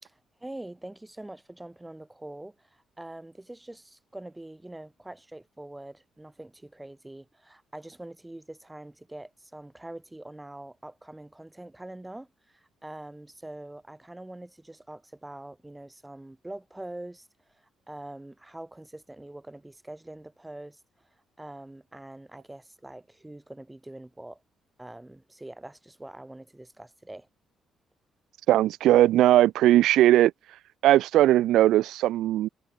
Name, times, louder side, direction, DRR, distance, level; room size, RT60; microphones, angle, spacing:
voice 1, 0.0-17.3 17.5-21.1 21.4-24.4 24.8-27.3, right 1 dB, 10° right, 3.4 m, -44 dB
voice 2, 28.5-30.3 30.8-32.5, right 14 dB, 85° right, 0.4 m, -19 dB
cardioid pair, 90°, 0 cm